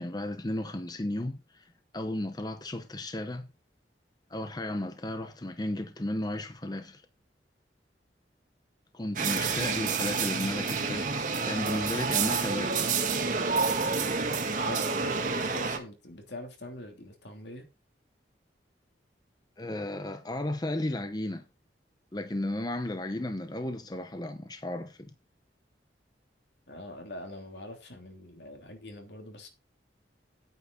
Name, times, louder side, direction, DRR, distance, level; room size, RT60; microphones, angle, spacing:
voice 1, 0.0-3.5 4.3-7.0 8.9-12.8 19.6-21.4 22.1-25.1, left 1 dB, 20° left, 0.8 m, -34 dB
sound 1, 9.2-15.8, right 5 dB, 45° right, 1.5 m, -29 dB
voice 2, 14.7-17.7 26.7-29.5, left 1 dB, 70° left, 3.0 m, -43 dB
9.8 x 9.1 x 4.0 m
head